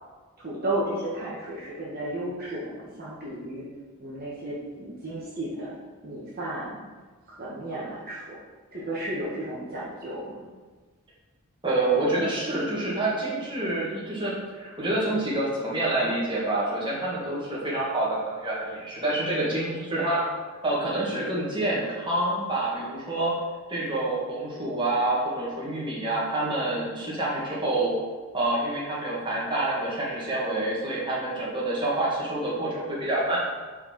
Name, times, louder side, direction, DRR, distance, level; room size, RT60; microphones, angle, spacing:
voice 1, 0.4-3.6 4.0-5.7 6.0-6.8 7.4-8.4 8.7-10.3, right 1 dB, 40° right, -7 dB, 1.4 m, -33 dB
voice 2, 11.6-20.2 20.6-23.3 23.7-27.9 28.3-33.4, right 2 dB, 20° right, -6 dB, 1.7 m, -27 dB
4.8 x 4.5 x 5.9 m, 1.4 s
head